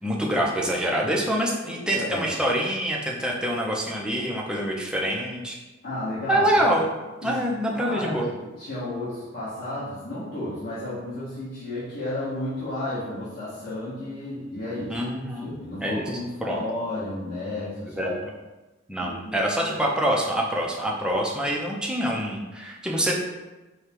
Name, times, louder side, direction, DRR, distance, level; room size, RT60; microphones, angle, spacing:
voice 1, 0.0-5.6 6.3-6.8 7.2-8.3 14.9-15.6 15.8-16.0 16.4-16.6 18.0-18.2 18.9-23.1, equal, 5° right, -2 dB, 0.6 m, -25 dB
voice 2, 1.9-2.3 5.8-6.7 7.2-7.4 7.7-15.0 15.4-18.1 19.0-19.5, left 1 dB, 50° left, -12 dB, 1.5 m, -33 dB
5.0 x 2.3 x 4.4 m, 1.1 s
head